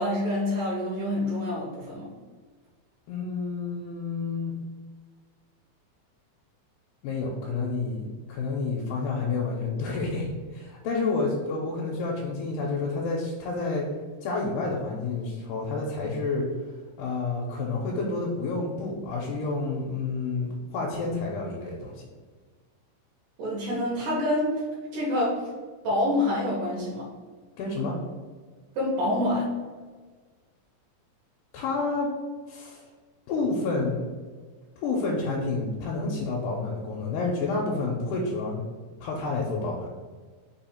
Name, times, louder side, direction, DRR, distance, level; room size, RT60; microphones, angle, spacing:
voice 1, 0.0-2.1 23.4-24.6 24.9-25.4 25.8-27.1 28.8-29.5, left 1 dB, 80° right, -6 dB, 2.4 m, -27 dB
voice 2, 3.1-4.5 7.0-13.9 14.2-16.5 17.0-22.1 27.6-28.0 31.5-32.1 32.5-32.8 33.3-34.1 34.8-38.7 39.0-39.9, left 3 dB, 80° left, -3 dB, 2.1 m, -29 dB
5.2 x 2.4 x 4.3 m, 1.4 s
omnidirectional pair, 3.8 m